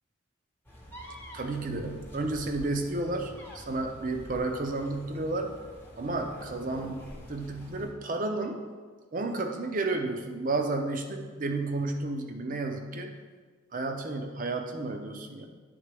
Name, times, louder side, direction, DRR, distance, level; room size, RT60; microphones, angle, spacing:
sound 1, 0.7-7.9, equal, 10° left, 0.8 m, -47 dB
voice 1, 1.3-5.5 6.0-8.6 9.1-13.2 13.7-15.5, right 2 dB, 40° right, 5 dB, 0.6 m, -32 dB
10.5 x 3.8 x 3.4 m, 1.5 s
head